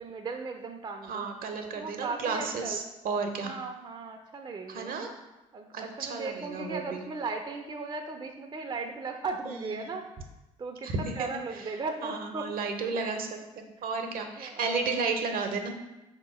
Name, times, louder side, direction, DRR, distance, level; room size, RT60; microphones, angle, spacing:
voice 1, 0.0-1.3 1.7-2.8 3.4-4.9 5.5-10.1 10.6-12.5 12.9-13.2 14.4-15.0, right 4 dB, 25° right, 4 dB, 0.5 m, -37 dB
voice 2, 1.1-3.6 4.7-5.1 5.7-7.0 9.4-9.9 10.8-11.3 12.0-13.3 13.6-15.7, right 4 dB, 60° right, 5 dB, 0.7 m, -33 dB
3.7 x 2.9 x 4.8 m, 1.0 s
hypercardioid pair, 55°, 17 cm